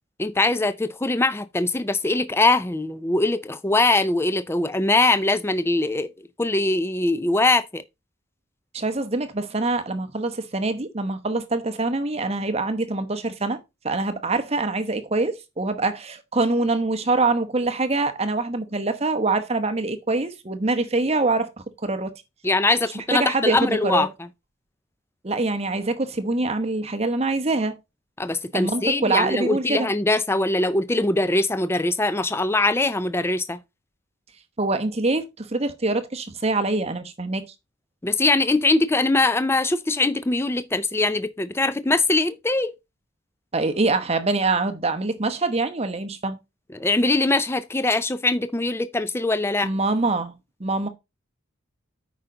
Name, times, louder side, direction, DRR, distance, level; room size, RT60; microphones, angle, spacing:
voice 1, 0.2-6.1 6.4-7.8 22.4-24.1 28.2-33.6 38.0-42.7 46.7-49.7, left 2 dB, 10° left, 0.4 m, -22 dB
voice 2, 8.7-13.6 13.8-21.5 21.8-22.1 22.9-24.1 25.2-27.8 28.5-29.9 34.6-37.4 43.5-46.4 49.6-50.3 50.6-50.9, right 3 dB, 30° right, 0.9 m, -24 dB
8.9 x 5.1 x 3.8 m
head